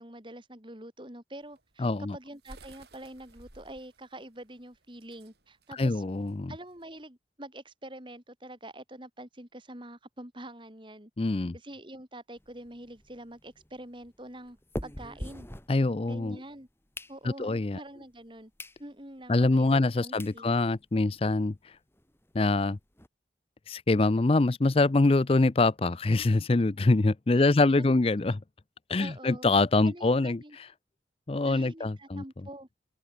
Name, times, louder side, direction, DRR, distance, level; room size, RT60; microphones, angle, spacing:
voice 1, 0.0-6.0 6.5-11.1 11.5-14.6 14.8-15.5 16.1-16.7 17.1-18.5 18.8-20.5 27.4-28.0 29.0-29.5 29.8-30.6 31.4-32.7, right 1 dB, 25° right, 3.9 m, -45 dB
sound 1, 1.4-7.0, right 2 dB, 65° right, 5.8 m, -55 dB
voice 2, 1.8-2.2 5.7-6.5 11.2-11.5 15.7-16.4 17.2-17.8 19.3-21.8 22.3-22.8 23.7-28.4 28.9-30.7 31.3-32.2, left 2 dB, 30° left, 0.5 m, -25 dB
sound 2, 12.4-16.3 16.7-17.6 18.1-18.2 18.6-18.8 19.2-19.3 19.9-20.0 20.2-20.4 20.8-20.9 21.1-21.2 21.5-21.6 21.9-23.1, left 1 dB, 15° left, 3.5 m, -43 dB
open air
head